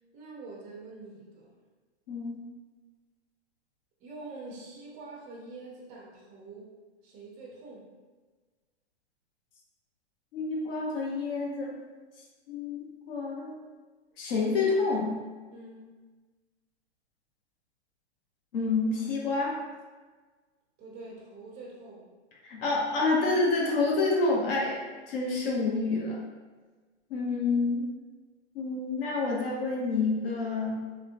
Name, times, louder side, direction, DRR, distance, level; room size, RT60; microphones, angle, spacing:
voice 1, 0.1-1.5 4.0-6.7 7.0-7.9 15.5-15.9 20.8-22.1, right 3 dB, 20° right, -4 dB, 0.5 m, -45 dB
voice 2, 2.1-2.4 10.3-11.8 12.5-13.6 14.2-15.2 18.5-19.6 22.4-24.8 25.1-26.2 27.1-27.9 28.5-30.8, left 3 dB, 55° left, -2 dB, 0.7 m, -28 dB
2.9 x 2.0 x 2.5 m, 1.3 s
hypercardioid pair, 125°, 35 cm